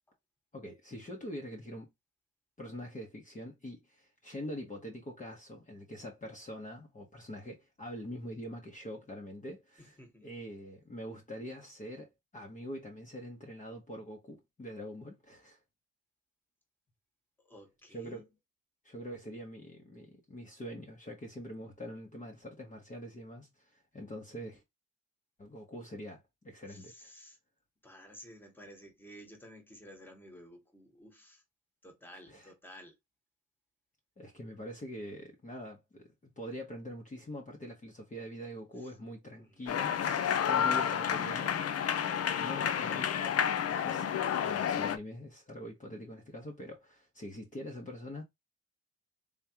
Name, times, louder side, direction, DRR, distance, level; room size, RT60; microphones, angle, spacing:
voice 1, 0.5-1.9 2.6-12.1 12.3-15.6 17.9-18.2 18.8-24.6 25.4-27.1 32.1-32.5 34.2-41.6 42.4-43.4 43.7-48.2, equal, 25° left, 1.2 m, -44 dB
voice 2, 9.8-10.3 17.4-18.2 26.7-27.4 27.8-31.4 31.8-33.0 39.3-39.8, equal, 5° left, 1.4 m, -53 dB
sound 1, 39.7-45.0, left 8 dB, 55° left, 0.7 m, -30 dB
3.7 x 3.1 x 2.9 m
cardioid pair, 90°, 30 cm